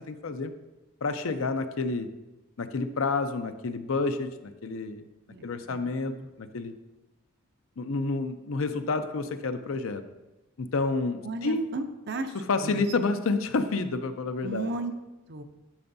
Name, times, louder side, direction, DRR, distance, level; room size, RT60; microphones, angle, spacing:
voice 1, 0.1-0.5 1.0-2.1 2.6-5.0 5.4-6.7 7.8-10.0 10.6-11.7 12.5-14.7, left 3 dB, 75° left, 9 dB, 0.5 m, -29 dB
voice 2, 5.3-6.3 11.2-12.4 12.6-12.8 14.4-14.9 15.3-15.4, right 2 dB, 50° right, 7 dB, 0.6 m, -35 dB
10.5 x 6.8 x 2.7 m, 1.0 s
head